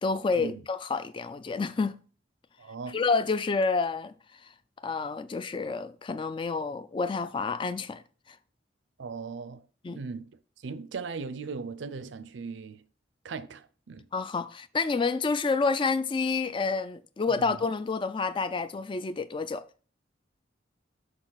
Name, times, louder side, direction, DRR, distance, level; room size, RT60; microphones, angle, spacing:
voice 1, 0.0-2.0 2.9-4.1 4.8-8.0 9.8-10.0 14.1-19.6, left 4 dB, 25° left, 0.3 m, -29 dB
voice 2, 2.6-3.0 9.0-9.6 9.9-10.3 10.6-12.8 13.2-14.1 17.4-17.6, right 4 dB, 85° right, 0.5 m, -38 dB
6.4 x 5.0 x 4.0 m
head